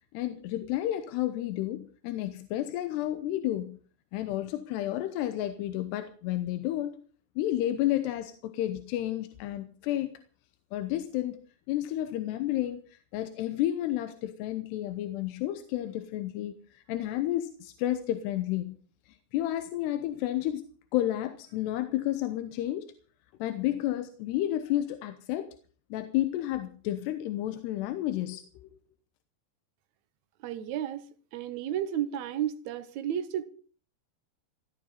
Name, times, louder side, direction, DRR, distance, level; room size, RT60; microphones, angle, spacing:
voice 1, 0.1-3.8 4.1-7.0 7.4-10.1 10.7-11.4 11.7-18.8 19.3-20.6 20.9-22.9 23.4-25.5 25.9-28.7, left 13 dB, 90° left, 3.1 m, -31 dB
voice 2, 30.4-31.0 31.3-33.5, right 10 dB, 75° right, 1.7 m, -32 dB
17.0 x 13.5 x 5.5 m
omnidirectional pair, 4.7 m